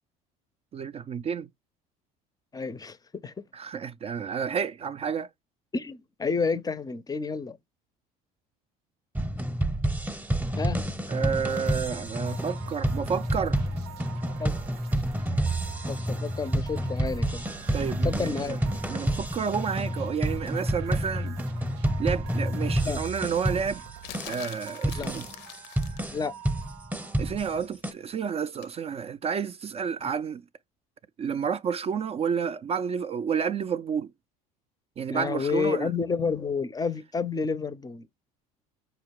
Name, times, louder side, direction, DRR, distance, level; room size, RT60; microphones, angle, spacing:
voice 1, 0.7-1.5 3.5-5.3 11.1-13.6 17.7-18.6 18.9-21.4 22.0-23.8 24.3-25.3 27.2-30.4 31.2-34.1 35.0-35.9, right 7 dB, 35° right, 0.4 m, -30 dB
voice 2, 2.5-3.0 3.2-3.3 5.7-7.6 10.6-10.8 14.4-14.5 15.9-17.4 18.0-18.6 22.8-23.0 25.0-25.1 26.1-26.3 35.1-38.1, left 5 dB, 20° left, 0.5 m, -30 dB
sound 1, 9.1-27.9, right 1 dB, 10° right, 0.8 m, -29 dB
sound 2, 11.5-27.6, right 9 dB, 70° right, 0.7 m, -47 dB
sound 3, 24.0-26.1 28.6-28.8, left 14 dB, 65° left, 0.6 m, -43 dB
5.0 x 2.2 x 4.6 m
supercardioid pair, 85°, 19 cm